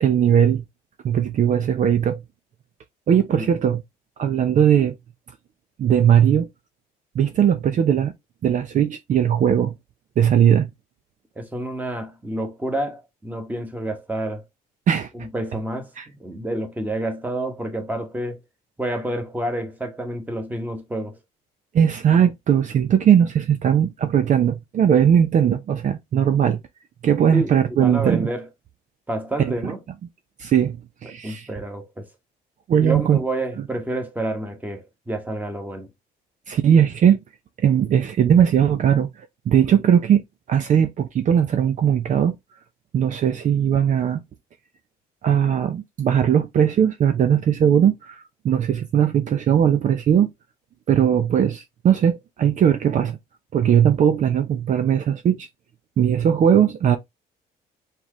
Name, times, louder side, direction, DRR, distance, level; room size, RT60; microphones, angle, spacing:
voice 1, 0.0-0.6 1.0-2.2 3.1-3.8 4.2-4.9 5.8-6.5 7.1-8.1 8.4-9.7 10.2-10.7 14.9-15.1 16.0-16.1 21.7-26.6 27.0-28.3 29.4-29.5 30.4-31.5 32.7-33.2 36.5-37.2 37.6-40.2 40.5-42.3 42.9-44.2 45.2-50.3 50.9-53.2 53.5-55.5 56.0-57.0, right 9 dB, 45° right, 0.6 m, -19 dB
voice 2, 11.4-14.4 15.1-18.4 18.8-21.2 27.3-28.5 29.1-29.8 31.2-32.1 32.8-35.9, right 1 dB, 10° right, 1.5 m, -29 dB
4.6 x 3.6 x 3.1 m
cardioid pair, 110°, 17 cm